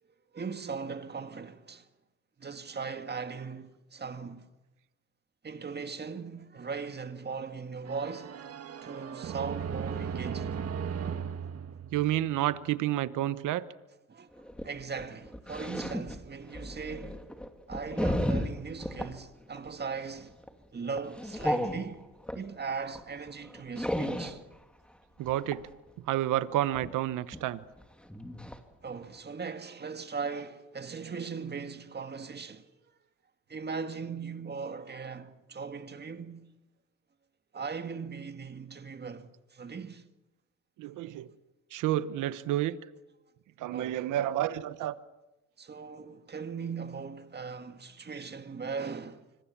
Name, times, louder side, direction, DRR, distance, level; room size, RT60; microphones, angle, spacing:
voice 1, 0.3-1.9 2.4-4.5 5.4-8.4 8.8-10.6 14.1-17.3 17.7-20.3 20.7-22.1 22.3-24.4 28.8-32.7 33.5-36.5 37.5-40.0 43.7-44.1 45.6-49.3, right 5 dB, 35° right, 2.0 m, -39 dB
sound 1, 7.9-12.6, right 7 dB, 55° right, 1.5 m, -37 dB
voice 2, 11.9-13.6 25.2-25.6 26.1-27.6 40.8-41.3 41.7-42.7 43.6-44.9, right 13 dB, 90° right, 1.0 m, -30 dB
sound 2, 14.4-19.1 19.6-19.8 20.2-20.5 21.0-22.4 22.9-23.0 23.3-24.4 25.3-25.7 26.8-26.9 27.3-27.4 27.8-27.9 28.1-28.6 29.0-29.1, equal, 5° left, 2.4 m, -33 dB
25.5 x 23.0 x 7.3 m
cardioid pair, 90°, 30 cm